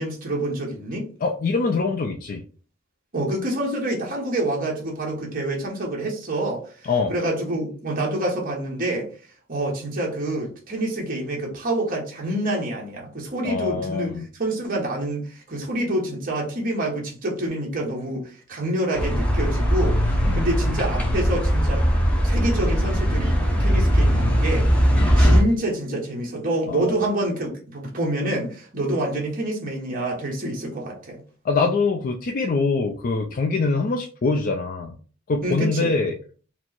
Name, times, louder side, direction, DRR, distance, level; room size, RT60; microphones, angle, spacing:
voice 1, 0.0-1.1 3.1-9.1 9.5-20.0 20.3-21.8 22.2-24.7 25.2-31.2 35.4-35.9, right 1 dB, 45° right, -2 dB, 1.2 m, -27 dB
voice 2, 1.2-2.4 6.8-7.1 13.4-14.3 20.2-20.4 24.9-25.1 26.7-27.0 31.4-34.9 35.3-36.2, left 4 dB, 45° left, 2 dB, 0.4 m, -24 dB
sound 1, 18.9-25.4, equal, 5° left, 0.8 m, -20 dB
4.4 x 2.0 x 4.3 m, 0.40 s
head